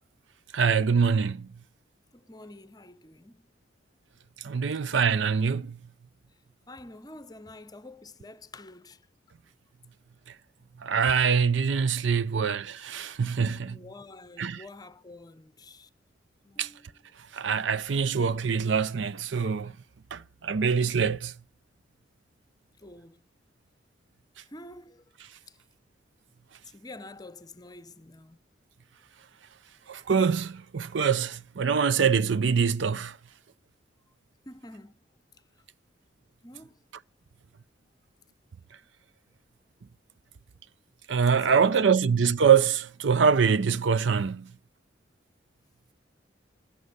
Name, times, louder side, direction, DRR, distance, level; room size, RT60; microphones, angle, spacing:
voice 1, 0.5-1.5 4.4-5.8 10.8-13.8 14.4-14.6 16.6-16.7 17.3-19.7 20.1-21.3 29.9-33.2 41.1-44.5, right 6 dB, 70° right, 0.5 m, -24 dB
voice 2, 2.1-3.6 6.7-9.0 13.6-15.9 16.4-17.0 22.8-23.2 24.4-25.0 25.5-25.6 26.6-28.4 34.5-35.0 36.4-36.8 41.5-42.0, left 2 dB, 20° left, 0.7 m, -47 dB
14.5 x 8.6 x 5.4 m
head